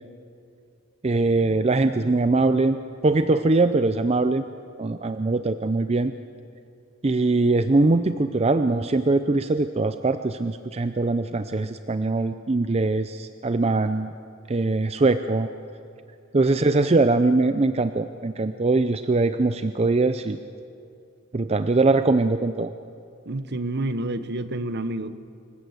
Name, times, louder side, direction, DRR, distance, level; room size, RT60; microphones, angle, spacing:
voice 1, 1.0-2.8 3.0-4.4 4.8-6.1 7.0-14.1 14.5-15.5 16.3-20.4 21.3-22.7, right 3 dB, 30° right, 10 dB, 0.5 m, -22 dB
voice 2, 23.2-25.2, right 1 dB, 50° right, 12 dB, 1.0 m, -29 dB
26.0 x 15.5 x 8.1 m, 2.5 s
head